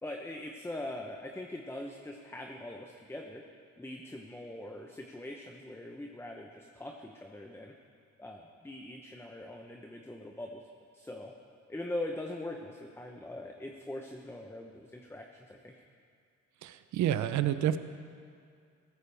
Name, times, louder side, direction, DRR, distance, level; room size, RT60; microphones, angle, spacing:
voice 1, 0.0-3.4 3.8-7.7 8.2-10.6 10.9-11.3 11.7-15.8, left 1 dB, 10° left, 2 dB, 0.9 m, -42 dB
voice 2, 16.6-17.8, right 11 dB, 70° right, 12 dB, 0.7 m, -29 dB
16.0 x 14.0 x 3.5 m, 2.3 s
cardioid pair, 90°, 30 cm